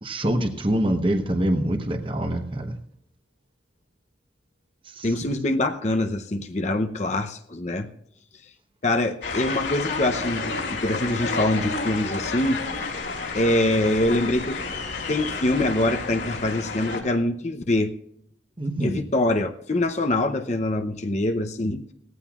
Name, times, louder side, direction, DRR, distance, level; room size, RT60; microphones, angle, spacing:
voice 1, 0.0-2.7 5.0-5.1 18.6-19.0, right 1 dB, 30° right, 5 dB, 1.0 m, -25 dB
voice 2, 5.0-7.9 8.8-12.6 13.3-14.6 15.1-17.9 18.8-21.8, left 1 dB, 40° left, 6 dB, 0.7 m, -24 dB
sound 1, 9.2-17.0, left 3 dB, 75° left, 3.0 m, -30 dB
18.5 x 14.5 x 2.4 m, 0.72 s
head